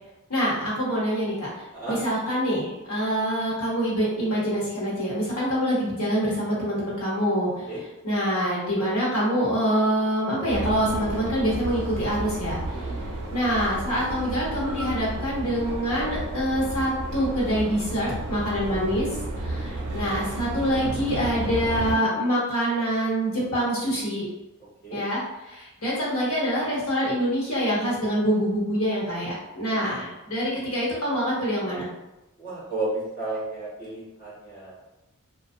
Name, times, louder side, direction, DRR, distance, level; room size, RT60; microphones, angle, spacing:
voice 1, 0.3-7.7 8.0-19.1 19.4-24.3 24.9-25.2 25.5-31.9, equal, 90° left, -6 dB, 1.1 m, -25 dB
sound 1, 10.5-22.0, right 2 dB, 85° right, 0.4 m, -32 dB
voice 2, 32.4-34.9, right 2 dB, 40° left, -10 dB, 1.4 m, -33 dB
2.5 x 2.2 x 2.5 m, 0.99 s
head